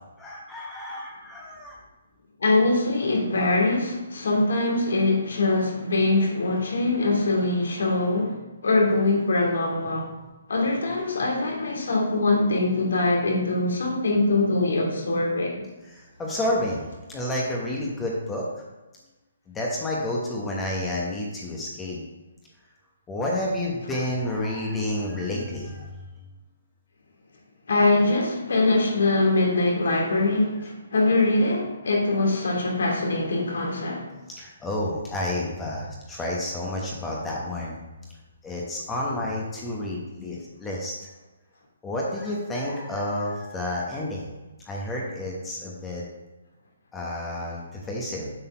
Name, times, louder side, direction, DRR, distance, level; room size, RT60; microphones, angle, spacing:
voice 1, 0.2-1.8 15.8-18.6 19.5-22.0 23.1-25.9 34.3-37.8 38.4-40.9 41.8-44.3 44.7-46.0 46.9-48.3, left 1 dB, 10° left, -3 dB, 1.0 m, -30 dB
voice 2, 2.4-8.3 8.6-10.1 10.5-15.6 27.7-34.1, left 2 dB, 75° left, -1 dB, 2.3 m, -23 dB
7.6 x 4.2 x 5.6 m, 1.1 s
hypercardioid pair, 160°, 0 cm